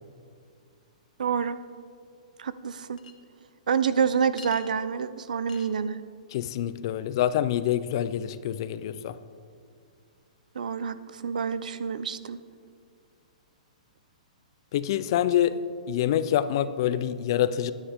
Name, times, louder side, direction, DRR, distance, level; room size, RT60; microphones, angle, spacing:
voice 1, 1.2-1.6 2.4-3.0 3.7-6.0 10.5-12.4, right 6 dB, 85° right, 14 dB, 0.7 m, -27 dB
Chink clink, 3.0-3.1 4.4-4.7 5.5-5.7, left 6 dB, 80° left, 1.5 m, -44 dB
voice 2, 6.3-9.2 14.7-15.6 15.9-17.7, left 11 dB, 35° left, 14 dB, 0.5 m, -26 dB
22.5 x 9.9 x 3.6 m, 2.2 s
hypercardioid pair, 170°, 4 cm